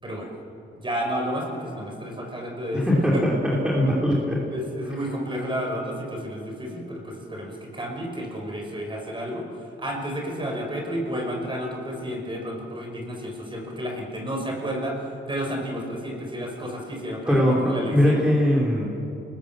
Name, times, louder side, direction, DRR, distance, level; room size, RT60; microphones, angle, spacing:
voice 1, 0.7-3.2 4.5-9.5 9.8-15.0 15.3-18.2, equal, 25° right, 1 dB, 5.8 m, -31 dB
voice 2, 2.7-4.4 17.3-18.9, equal, 5° right, -5 dB, 3.7 m, -21 dB
29.0 x 20.5 x 7.7 m, 2.8 s
cardioid pair, 115°, 20 cm